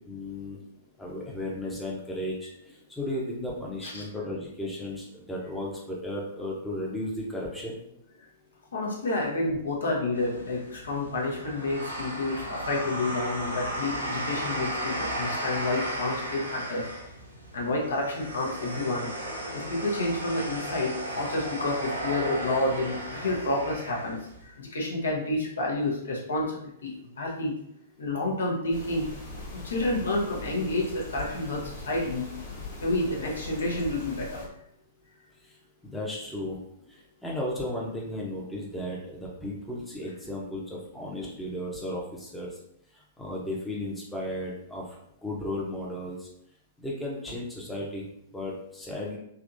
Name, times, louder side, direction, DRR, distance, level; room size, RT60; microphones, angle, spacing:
voice 1, 0.1-0.6 1.0-7.8 35.4-35.6 35.8-36.6 36.9-42.5 42.9-46.3 46.8-48.0 48.3-49.2, left 1 dB, 5° left, -4 dB, 0.7 m, -35 dB
voice 2, 8.7-16.9 17.5-19.1 19.5-27.5 28.0-29.1 29.5-32.3 32.8-34.5, left 2 dB, 65° left, -2 dB, 0.8 m, -29 dB
sound 1, 10.1-24.4, right 1 dB, 85° right, 0.8 m, -35 dB
sound 2, 28.7-34.5, left 3 dB, 45° left, 1.3 m, -41 dB
3.4 x 2.8 x 2.6 m, 0.75 s
figure-of-eight pair, 105°, 0 cm